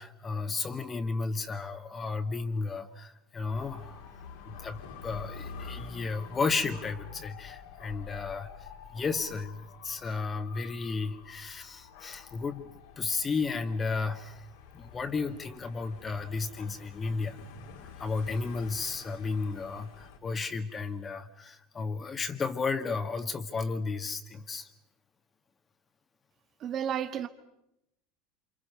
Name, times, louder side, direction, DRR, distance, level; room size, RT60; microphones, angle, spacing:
voice 1, 0.0-4.0 4.4-8.5 8.9-14.4 14.7-17.4 18.0-24.7, left 4 dB, 25° left, 1.8 m, -33 dB
Dog / Motorcycle, 3.4-20.2, left 6 dB, 70° left, 2.8 m, -48 dB
voice 2, 26.6-27.3, right 9 dB, 40° right, 1.7 m, -32 dB
29.0 x 27.0 x 5.5 m
hypercardioid pair, 75°, 0 cm